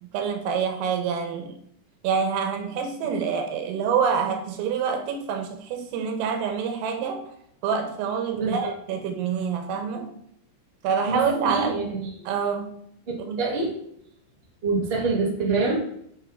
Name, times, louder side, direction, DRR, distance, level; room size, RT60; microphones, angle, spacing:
voice 1, 0.0-1.6 2.0-7.2 7.6-10.1 10.8-12.0 12.3-12.7 13.3-13.4, right 6 dB, 85° right, 3.8 m, -26 dB
voice 2, 11.0-11.8 12.2-12.3 13.1-13.8 14.6-15.7, right 3 dB, 30° right, 1.0 m, -26 dB
9.5 x 6.8 x 3.6 m
omnidirectional pair, 5.9 m